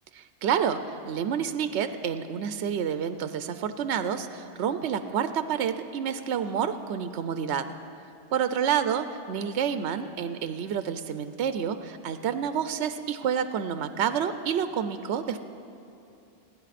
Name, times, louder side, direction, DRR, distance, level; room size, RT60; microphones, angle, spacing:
voice 1, 0.2-7.7 8.3-15.4, right 8 dB, 85° right, 10 dB, 0.9 m, -29 dB
28.5 x 10.0 x 4.1 m, 2.7 s
omnidirectional pair, 1.1 m